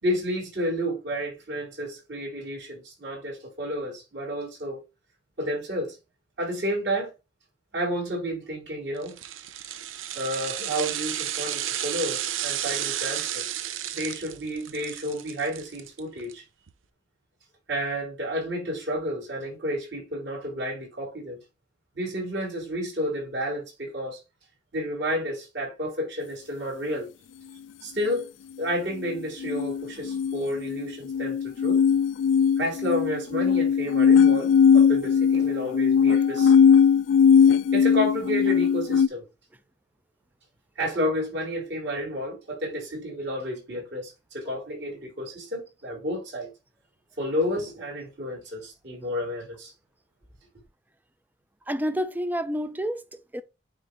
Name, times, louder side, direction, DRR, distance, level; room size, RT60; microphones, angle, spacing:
voice 1, 0.0-4.8 5.4-6.0 6.4-7.1 7.7-9.2 10.1-13.5 13.9-16.4 17.7-21.4 21.9-24.2 24.7-27.1 27.8-28.3 28.6-31.8 32.6-36.5 37.7-39.3 40.8-46.5 47.2-49.7, equal, 60° right, 4.6 m, -31 dB
sound 1, 9.0-16.3 16.7-16.8, right 11 dB, 90° right, 0.6 m, -32 dB
sound 2, 29.4-39.1, left 7 dB, 70° left, 0.3 m, -19 dB
voice 2, 51.7-53.4, equal, 10° right, 0.4 m, -29 dB
9.7 x 3.5 x 3.1 m
head